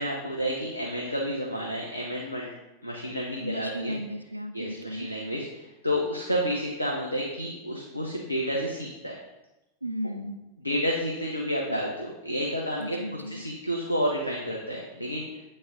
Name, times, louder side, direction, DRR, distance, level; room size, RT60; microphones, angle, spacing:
voice 1, 0.0-2.5 2.8-4.0 4.5-9.1 10.6-13.0 13.3-15.2, equal, 85° left, -2 dB, 0.8 m, -30 dB
voice 2, 3.4-5.1 9.8-10.5 12.8-13.4, equal, 90° right, 7 dB, 0.5 m, -35 dB
8.0 x 3.9 x 3.8 m, 1.0 s
figure-of-eight pair, 90°, 0 cm